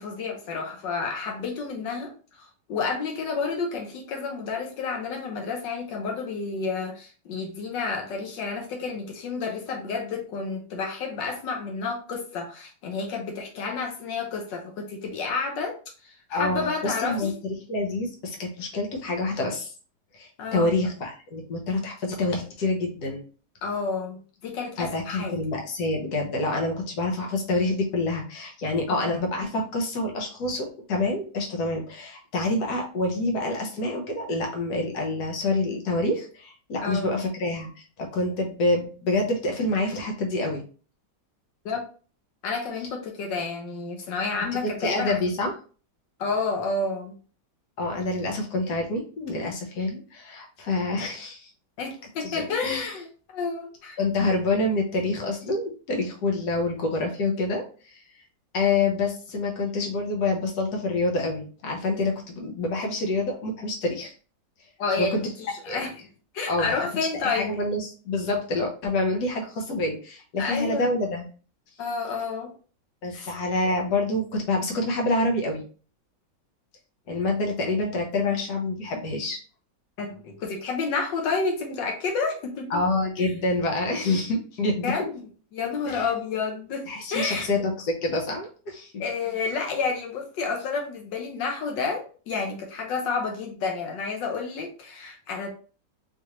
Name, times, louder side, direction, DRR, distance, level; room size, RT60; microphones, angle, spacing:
voice 1, 0.0-2.1 2.4-17.3 20.4-20.8 23.6-25.4 28.9-29.1 36.8-37.1 41.6-41.8 42.4-45.2 46.2-47.1 51.8-54.0 64.8-66.1 66.3-67.6 70.4-70.9 71.8-72.5 73.1-73.3 80.0-82.7 84.8-85.2 85.5-87.5 89.0-95.5, left 4 dB, 80° left, 2 dB, 1.5 m, -30 dB
voice 2, 16.3-19.7 20.1-23.2 24.8-40.6 44.6-45.5 47.8-51.5 52.2-52.9 54.0-58.0 58.5-64.1 65.0-65.2 65.6-65.8 66.5-66.7 67.2-71.3 73.0-75.6 77.1-79.4 82.7-85.1 85.9-86.0 86.9-88.9, left 2 dB, 65° left, 1 dB, 1.4 m, -27 dB
4.6 x 2.6 x 2.9 m, 0.38 s
omnidirectional pair, 1.9 m